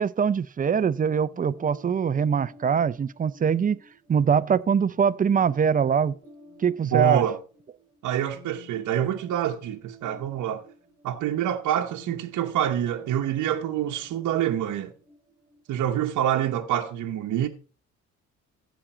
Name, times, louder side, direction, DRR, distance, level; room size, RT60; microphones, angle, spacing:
voice 1, 0.0-3.8 4.1-6.2 6.6-7.2, right 7 dB, 30° right, 0.5 m, -23 dB
sound 1, 0.8-16.4, equal, 10° right, 4.0 m, -52 dB
voice 2, 6.8-7.4 8.0-10.6 11.0-14.9 15.7-17.5, right 10 dB, 75° right, 0.9 m, -26 dB
15.0 x 5.2 x 4.3 m
cardioid pair, 90°, 30 cm